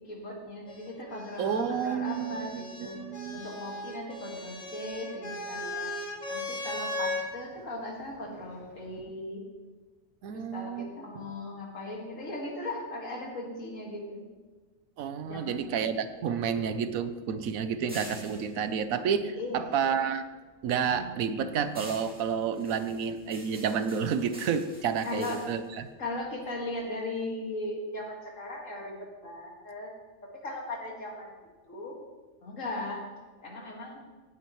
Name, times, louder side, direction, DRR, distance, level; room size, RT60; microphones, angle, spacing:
voice 1, 0.1-3.0 3.3-5.9 6.3-9.4 10.3-14.2 15.3-15.8 19.4-19.8 25.0-25.4 26.0-29.0 29.2-29.9 30.4-31.3 31.7-31.9 32.4-33.0 33.4-34.0, left 2 dB, 70° left, -1 dB, 2.4 m, -38 dB
sound 1, 0.7-7.3 8.4-9.0, left 1 dB, 30° left, 1.6 m, -38 dB
voice 2, 1.4-3.5 10.2-10.9 15.0-20.2 20.6-25.9, right 7 dB, 90° right, 11 dB, 1.2 m, -30 dB
sound 2, 15.6-20.0 20.4-26.8, equal, 5° right, 2.4 m, -49 dB
17.5 x 8.5 x 3.1 m, 1.4 s
omnidirectional pair, 1.4 m